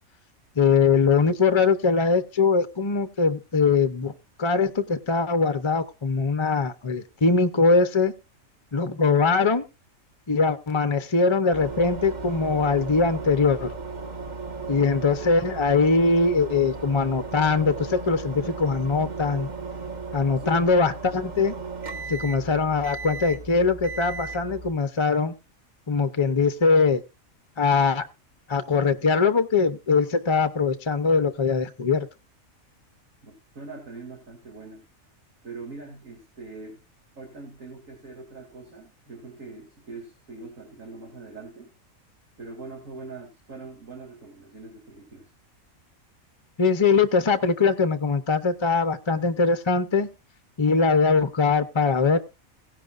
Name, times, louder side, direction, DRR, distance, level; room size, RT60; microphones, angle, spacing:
voice 1, 0.6-4.1 4.4-8.1 8.7-9.6 10.3-13.7 14.7-19.5 20.1-21.6 22.1-25.3 25.9-27.0 27.6-28.1 28.5-32.1 46.6-50.1 50.6-52.2, left 4 dB, 30° left, 10 dB, 0.5 m, -22 dB
sound 1, 11.5-24.7, right 4 dB, 35° right, 1.4 m, -36 dB
voice 2, 20.4-20.8 33.2-34.9 35.4-36.8 37.1-41.7 42.4-45.3, right 3 dB, 70° right, 0 dB, 2.8 m, -42 dB
16.5 x 10.5 x 2.4 m, 0.28 s
omnidirectional pair, 1.4 m